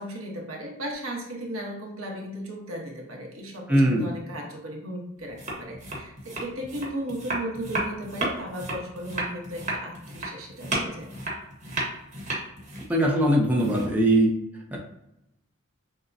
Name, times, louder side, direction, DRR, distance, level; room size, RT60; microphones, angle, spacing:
voice 1, 0.0-11.1, right 1 dB, 80° right, -1 dB, 1.0 m, -36 dB
voice 2, 3.7-4.1 12.9-14.3 14.7-14.8, right 1 dB, 10° right, -3 dB, 0.6 m, -21 dB
sound 1, 5.3-14.2, right 2 dB, 35° right, 1.1 m, -33 dB
6.4 x 2.2 x 2.6 m, 0.85 s
head